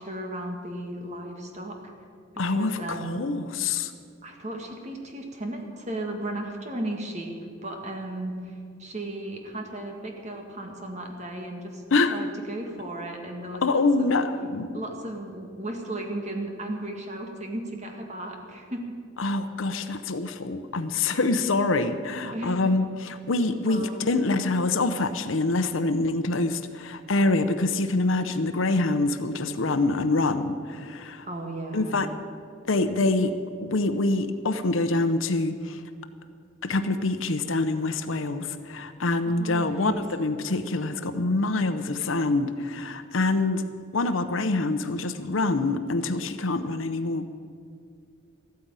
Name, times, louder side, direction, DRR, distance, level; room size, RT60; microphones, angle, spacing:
voice 1, 0.0-1.8 2.3-3.3 4.2-7.4 7.6-11.8 12.1-14.1 14.7-18.9 22.3-22.7 23.6-24.0 28.1-28.4 31.2-32.0 39.2-40.0, right 1 dB, 35° right, 2 dB, 1.8 m, -35 dB
voice 2, 2.4-3.9 11.9-12.2 13.6-14.8 19.2-31.3 31.7-32.1 32.7-33.3 33.6-35.8 36.6-43.6 43.9-47.3, left 2 dB, 70° left, 10 dB, 0.8 m, -25 dB
14.0 x 9.5 x 8.9 m, 2.2 s
head